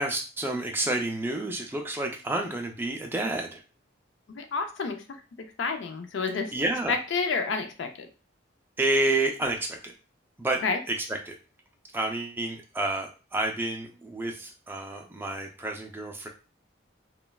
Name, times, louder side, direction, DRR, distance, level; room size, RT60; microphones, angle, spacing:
voice 1, 0.0-3.6 6.5-6.9 8.8-9.9 10.4-10.6 10.9-11.4 11.9-16.3, right 2 dB, 10° right, 2 dB, 0.3 m, -29 dB
voice 2, 4.3-5.2 5.6-6.5 6.9-8.1 10.6-10.8, left 4 dB, 70° left, 6 dB, 0.4 m, -29 dB
3.0 x 2.2 x 2.3 m, 0.34 s
head